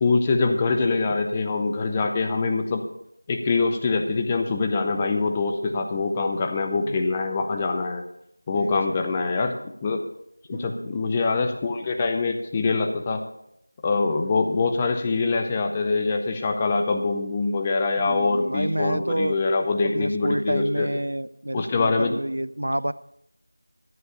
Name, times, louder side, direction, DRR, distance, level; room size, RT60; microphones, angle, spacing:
voice 1, 0.0-2.8 3.3-8.0 8.5-9.6 9.8-10.0 10.5-13.2 13.8-20.9 21.5-22.2, left 3 dB, 10° left, 4 dB, 0.5 m, -24 dB
voice 2, 8.5-9.3 10.5-11.0 18.0-19.4 19.9-22.9, right 1 dB, 70° right, 16 dB, 0.5 m, -29 dB
13.0 x 7.7 x 5.5 m, 0.77 s
figure-of-eight pair, 175°, 0 cm